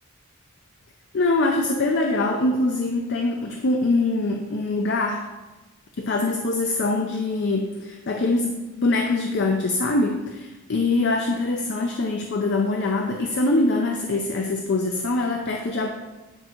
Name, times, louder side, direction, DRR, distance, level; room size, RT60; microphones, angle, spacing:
voice 1, 1.1-5.2 6.0-15.9, left 2 dB, 55° left, 3 dB, 0.5 m, -23 dB
9.0 x 3.7 x 4.5 m, 1.1 s
head